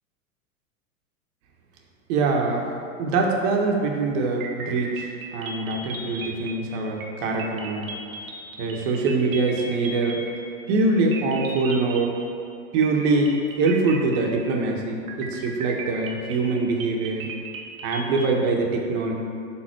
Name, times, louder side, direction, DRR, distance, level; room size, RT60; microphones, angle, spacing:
voice 1, 2.1-2.7 3.0-7.9 8.6-10.2 10.7-12.2 12.7-17.3 17.8-19.1, right 3 dB, 50° right, 0 dB, 1.6 m, -23 dB
sound 1, 4.4-10.8 11.1-12.5 12.8-14.7 15.1-18.5, right 3 dB, 70° right, 1.4 m, -37 dB
12.0 x 4.1 x 4.6 m, 2.5 s
hypercardioid pair, 125°, 43 cm